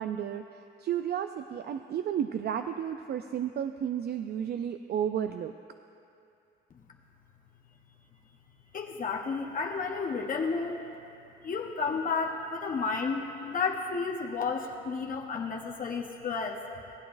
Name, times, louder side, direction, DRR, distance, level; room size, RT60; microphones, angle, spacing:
voice 1, 0.0-5.5, right 9 dB, 55° right, 8 dB, 0.4 m, -32 dB
voice 2, 8.7-10.8 11.4-16.6, left 4 dB, 45° left, 0 dB, 0.9 m, -32 dB
18.5 x 9.0 x 2.5 m, 2.6 s
cardioid pair, 90°, 20 cm